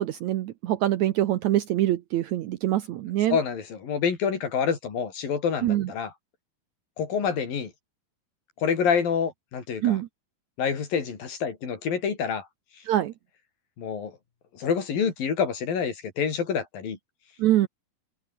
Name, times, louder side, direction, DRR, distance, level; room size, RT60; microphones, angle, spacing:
voice 1, 0.0-3.4 5.6-5.9 9.8-10.1 12.9-13.1 17.4-17.7, right 13 dB, 80° right, 1.6 m, -24 dB
voice 2, 3.3-6.1 7.0-7.7 8.6-10.0 10.6-12.5 13.8-14.1 14.5-17.0, left 6 dB, 60° left, 5.5 m, -27 dB
omnidirectional pair, 4.6 m